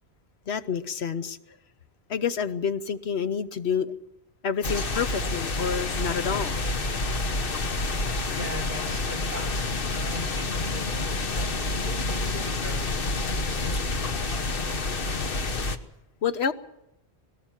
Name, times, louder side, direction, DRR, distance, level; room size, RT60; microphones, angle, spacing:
voice 1, 0.5-1.4 2.1-3.9 4.4-6.8 16.2-16.5, left 6 dB, 75° left, 11 dB, 1.2 m, -28 dB
sound 1, 4.6-15.8, left 3 dB, 60° left, 1.3 m, -28 dB
voice 2, 7.8-9.5 9.9-11.3 11.7-14.5, left 1 dB, 40° right, 4 dB, 4.2 m, -41 dB
20.5 x 17.5 x 7.4 m, 0.85 s
omnidirectional pair, 1.1 m